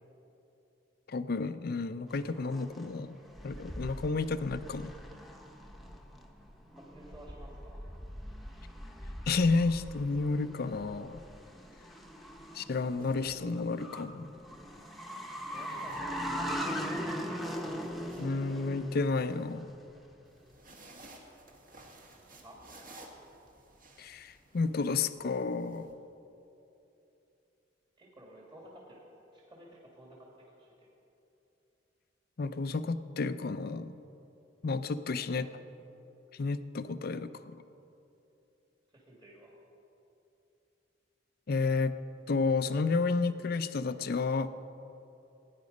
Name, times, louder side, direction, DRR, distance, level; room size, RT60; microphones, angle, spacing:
voice 1, 1.1-3.2 3.4-4.9 9.3-11.2 12.5-14.3 18.2-19.7 24.0-25.9 32.4-34.0 34.6-35.5 36.3-37.6 41.5-41.9 42.3-44.5, left 4 dB, 55° left, 12 dB, 0.5 m, -31 dB
sound 1, 2.1-20.1, equal, ahead, 0.9 m, -41 dB
voice 2, 6.8-7.9 15.5-16.5 22.4-23.0 28.0-29.0 29.3-30.3 30.6-30.9 35.3-35.6 38.9-39.6, right 1 dB, 30° right, -3 dB, 2.0 m, -53 dB
sound 2, 11.6-11.8 12.8-13.9 15.4-16.6 17.0-19.1 20.2-25.9, right 1 dB, 50° right, 1.8 m, -55 dB
17.0 x 9.5 x 5.3 m, 2.9 s
head